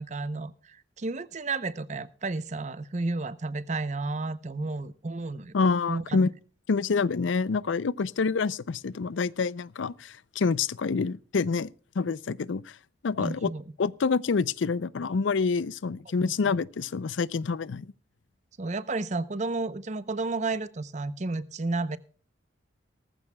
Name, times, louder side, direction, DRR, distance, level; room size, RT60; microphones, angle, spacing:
voice 1, 0.0-5.5 5.9-6.2 13.2-13.6 16.2-16.3 18.6-22.0, right 3 dB, 40° right, 0.7 m, -32 dB
voice 2, 5.5-6.3 6.7-11.7 12.0-12.7 13.0-13.5 13.8-17.9, left 4 dB, 85° left, 0.5 m, -27 dB
19.0 x 14.5 x 2.2 m
head